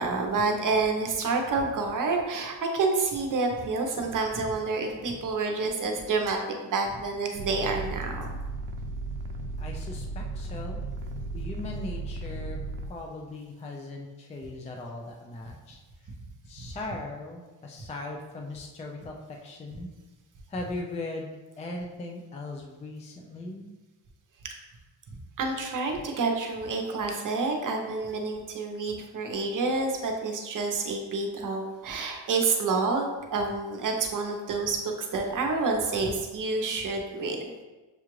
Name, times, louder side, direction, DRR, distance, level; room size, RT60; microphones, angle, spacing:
voice 1, 0.0-8.3 25.4-37.5, right 3 dB, 45° right, 2 dB, 0.8 m, -28 dB
sound 1, 7.3-12.9, right 2 dB, 85° right, 0.5 m, -35 dB
voice 2, 9.6-10.8 11.3-15.8 16.5-19.9 20.5-23.7, left 2 dB, 15° left, 1 dB, 0.3 m, -39 dB
6.7 x 2.4 x 3.1 m, 1.2 s
cardioid pair, 125°, 43 cm